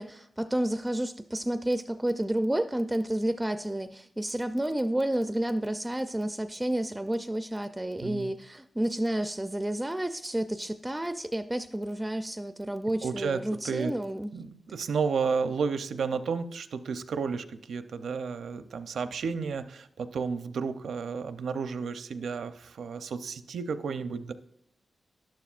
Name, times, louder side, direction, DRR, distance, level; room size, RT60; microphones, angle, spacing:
voice 1, 0.0-14.3, right 1 dB, 10° right, 9 dB, 0.4 m, -30 dB
voice 2, 8.0-8.3 13.0-13.9 14.3-24.3, right 5 dB, 85° right, 10 dB, 0.6 m, -32 dB
11.5 x 11.5 x 2.5 m, 0.72 s
wide cardioid pair, 115°, 0 cm